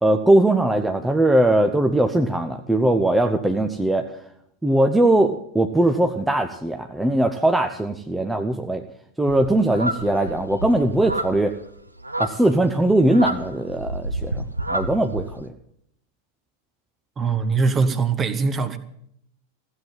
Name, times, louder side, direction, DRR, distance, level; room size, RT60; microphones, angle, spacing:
voice 1, 0.0-4.1 4.6-8.8 9.2-11.5 12.2-14.4 14.7-15.5, right 1 dB, 5° right, 5 dB, 0.9 m, -20 dB
sound 1, 9.3-15.4, right 1 dB, 85° right, 0.9 m, -30 dB
voice 2, 17.2-18.8, right 4 dB, 20° right, 11 dB, 1.3 m, -22 dB
15.5 x 7.8 x 8.9 m, 0.72 s
figure-of-eight pair, 90°, 0 cm